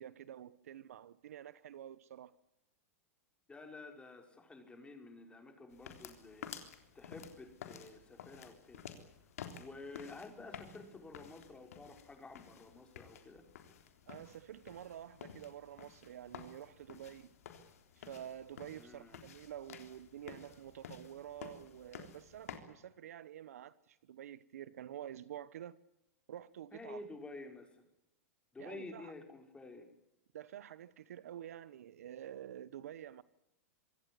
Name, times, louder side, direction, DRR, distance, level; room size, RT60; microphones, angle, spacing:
voice 1, 0.0-2.3 14.1-17.3 18.0-25.8 26.3-27.1 28.6-29.1 30.3-33.2, right 10 dB, 75° right, 1.1 m, -49 dB
voice 2, 3.5-8.8 9.1-9.2 9.6-13.5 18.7-19.2 26.7-27.8 28.5-29.9, left 3 dB, 15° left, 5.3 m, -51 dB
sound 1, 5.7-22.6, left 8 dB, 75° left, 3.6 m, -52 dB
26.0 x 15.5 x 9.6 m
hypercardioid pair, 110°, 8 cm